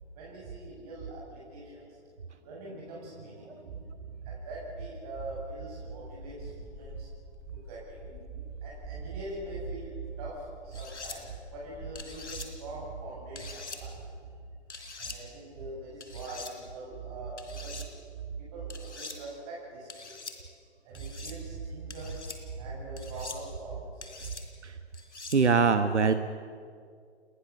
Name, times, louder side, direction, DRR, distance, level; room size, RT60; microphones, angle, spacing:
voice 1, 0.1-2.0 2.4-7.1 7.5-14.3 15.0-17.8 18.2-20.2 20.8-24.3, right 3 dB, 35° right, -5 dB, 7.5 m, -41 dB
sound 1, 6.0-12.4, left 4 dB, 10° left, 2.5 m, -50 dB
sound 2, 10.7-11.2 11.9-12.5 13.4-13.8 14.7-15.2 16.0-16.5 17.4-17.9 18.7-19.2 19.9-20.4 20.9-21.4 21.9-22.4 23.0-23.4 24.0-24.4 24.9-25.4, left 4 dB, 80° left, 4.0 m, -43 dB
voice 2, 25.3-26.1, right 5 dB, 75° right, 9 dB, 1.3 m, -23 dB
30.0 x 21.5 x 7.2 m, 2.2 s
figure-of-eight pair, 135°, 35 cm